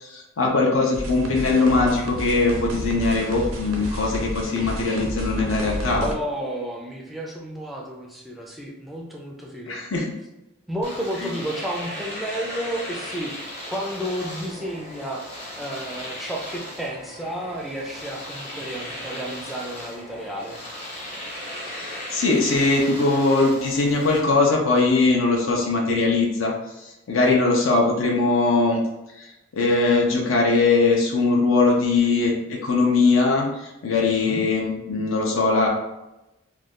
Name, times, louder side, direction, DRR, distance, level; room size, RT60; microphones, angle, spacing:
voice 1, 0.0-6.1 9.7-10.1 11.2-11.3 21.6-26.5 26.8-28.8 29.1-35.7, left 3 dB, 70° left, 0 dB, 0.5 m, -21 dB
sound 1, 0.9-6.1, equal, 85° right, 0.5 m, -31 dB
voice 2, 6.0-9.8 10.7-13.3 13.7-15.2 15.6-20.6 27.2-27.3 33.9-34.4, right 1 dB, ahead, -2 dB, 0.4 m, -32 dB
Domestic sounds home sounds, 10.8-24.2, left 1 dB, 30° left, 0.9 m, -37 dB
2.5 x 2.3 x 3.5 m, 0.95 s
head